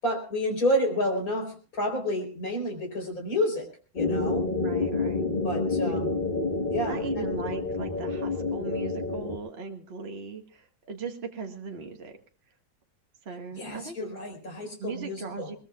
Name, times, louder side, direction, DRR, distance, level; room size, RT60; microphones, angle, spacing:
voice 1, 0.0-3.7 3.9-4.5 5.4-6.2 6.7-7.3 13.5-15.5, left 1 dB, 55° left, 3 dB, 4.7 m, -30 dB
sound 1, 4.0-9.4, left 3 dB, 30° left, 1.4 m, -28 dB
voice 2, 4.6-5.3 6.9-12.2 13.2-14.1 14.8-15.5, right 4 dB, 35° right, 4 dB, 1.8 m, -38 dB
21.5 x 21.0 x 2.4 m, 0.37 s
omnidirectional pair, 1.9 m